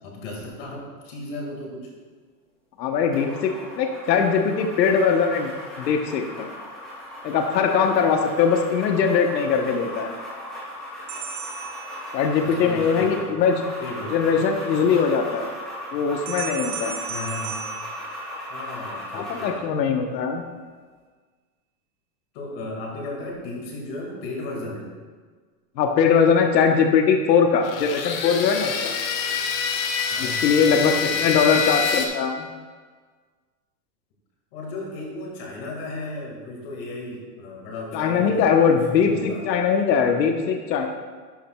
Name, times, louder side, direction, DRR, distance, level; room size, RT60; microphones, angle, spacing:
voice 1, 0.0-1.9 12.4-14.2 17.1-17.6 18.5-19.7 22.3-24.9 30.1-31.3 34.5-39.5, left 2 dB, 35° left, -1 dB, 1.9 m, -35 dB
voice 2, 2.8-5.5 5.8-6.5 7.2-10.1 12.1-13.6 14.1-15.5 15.9-17.0 19.1-20.4 25.8-29.0 30.2-32.5 37.9-40.9, left 6 dB, 80° left, 4 dB, 1.1 m, -21 dB
sound 1, 3.1-19.6, left 1 dB, ahead, 0.5 m, -37 dB
sound 2, 11.1-12.6 16.3-18.8, right 7 dB, 45° right, 0.8 m, -36 dB
sound 3, 27.6-32.1, left 6 dB, 55° left, 1.0 m, -26 dB
12.0 x 7.0 x 2.3 m, 1.5 s
supercardioid pair, 175°, 50 cm